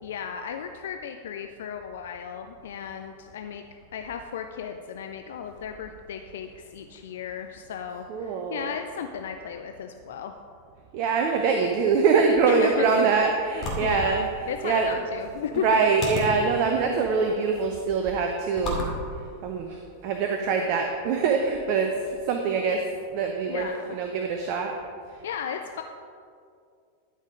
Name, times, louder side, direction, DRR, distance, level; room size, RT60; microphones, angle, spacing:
voice 1, 0.0-3.6 3.9-10.3 12.4-12.9 13.8-15.7 23.5-24.0 25.2-25.8, left 8 dB, 60° left, 6 dB, 0.4 m, -35 dB
voice 2, 8.1-8.7 10.9-14.9 15.6-18.9 19.4-22.8 23.1-24.7, right 5 dB, 45° right, 3 dB, 0.7 m, -24 dB
sound 1, 12.5-20.1, left 1 dB, 30° left, 2.2 m, -37 dB
12.0 x 5.5 x 5.0 m, 2.3 s
figure-of-eight pair, 90°, 0 cm